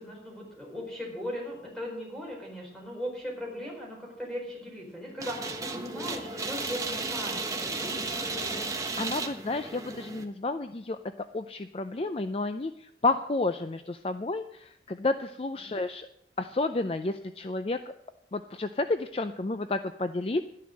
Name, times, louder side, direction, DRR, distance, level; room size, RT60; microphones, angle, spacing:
voice 1, 0.0-8.7 15.6-15.8, equal, 5° left, -2 dB, 4.4 m, -38 dB
sound 1, 5.2-10.2, right 3 dB, 20° right, 1.1 m, -34 dB
voice 2, 9.0-11.0 11.3-16.1 16.4-17.8 18.3-20.4, left 2 dB, 35° left, 9 dB, 0.4 m, -31 dB
12.0 x 10.5 x 6.4 m, 0.76 s
head